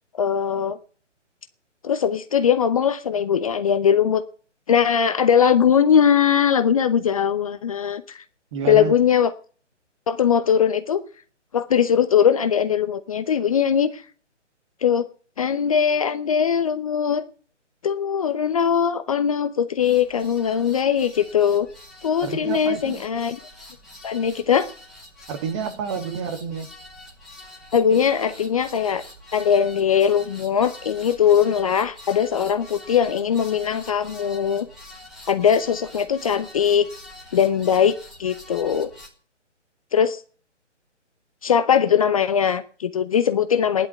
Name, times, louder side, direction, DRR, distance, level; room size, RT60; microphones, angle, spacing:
voice 1, 0.2-0.8 1.8-4.2 4.7-8.2 8.7-9.3 10.1-11.0 11.5-14.0 14.8-15.1 15.4-17.2 17.8-21.7 22.0-23.4 24.0-24.7 27.7-29.0 29.3-34.7 35.3-36.9 37.3-38.9 39.9-40.2 41.4-43.9, left 8 dB, 30° left, 0.8 m, -20 dB
voice 2, 8.5-9.0 22.2-23.0 25.3-26.7, right 6 dB, 25° right, 1.8 m, -29 dB
sound 1, 19.8-39.1, left 1 dB, ahead, 2.7 m, -45 dB
16.5 x 11.0 x 8.0 m
figure-of-eight pair, 140°, 36 cm